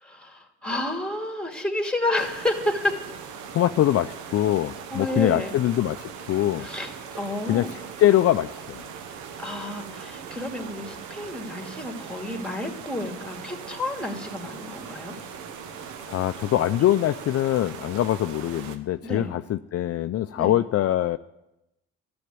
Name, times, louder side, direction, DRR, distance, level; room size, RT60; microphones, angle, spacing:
voice 1, 0.0-3.0 4.9-5.5 6.6-7.7 9.4-15.2 19.0-19.3 20.3-20.5, left 1 dB, 5° left, 3 dB, 2.5 m, -30 dB
sound 1, 2.2-18.8, right 6 dB, 85° right, 1.2 m, -40 dB
voice 2, 3.5-6.7 7.5-8.8 16.1-21.2, left 13 dB, 55° left, 11 dB, 0.5 m, -23 dB
12.0 x 7.9 x 9.4 m, 0.91 s
supercardioid pair, 65°, 29 cm